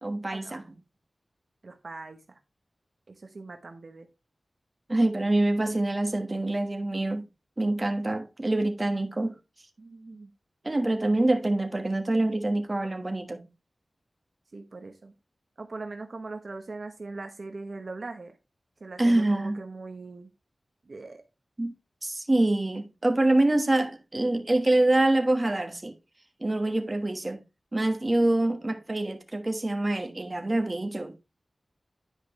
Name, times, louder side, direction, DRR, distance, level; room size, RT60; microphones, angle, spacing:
voice 1, 0.0-0.6 4.9-7.2 7.6-9.4 10.6-13.4 19.0-19.6 21.6-21.7 22.0-25.9 26.4-27.4 27.7-31.1, right 2 dB, 30° right, 1.3 m, -25 dB
voice 2, 1.6-2.4 3.1-4.1 9.8-10.3 14.5-15.1 15.6-18.4 18.8-20.3 20.9-21.2, right 3 dB, 60° right, 1.0 m, -41 dB
10.0 x 5.0 x 3.1 m
wide cardioid pair, 70°, 0 cm